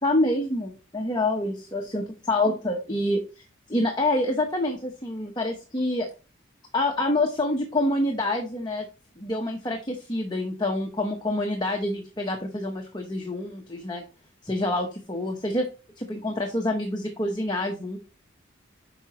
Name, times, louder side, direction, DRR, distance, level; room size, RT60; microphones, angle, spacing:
voice 1, 0.0-3.2 3.7-6.1 6.7-8.8 9.2-14.0 14.4-15.7 16.0-18.0, left 1 dB, 20° left, 1 dB, 1.0 m, -27 dB
8.9 x 5.9 x 3.0 m, 0.32 s
head